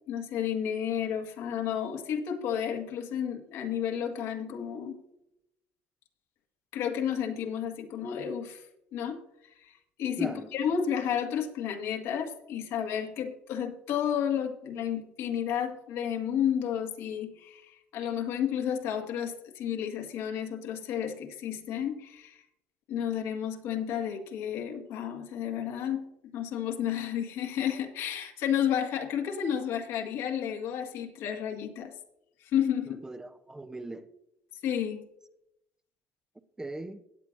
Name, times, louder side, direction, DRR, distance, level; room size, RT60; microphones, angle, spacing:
voice 1, 0.1-5.0 6.7-8.7 8.9-22.4 22.9-31.9 32.4-33.0 34.6-35.1, left 9 dB, 75° left, 1.8 m, -32 dB
voice 2, 10.2-10.5 32.9-34.1 36.6-37.0, right 2 dB, 15° right, 0.8 m, -39 dB
17.0 x 9.2 x 2.6 m
supercardioid pair, 90°, 5 cm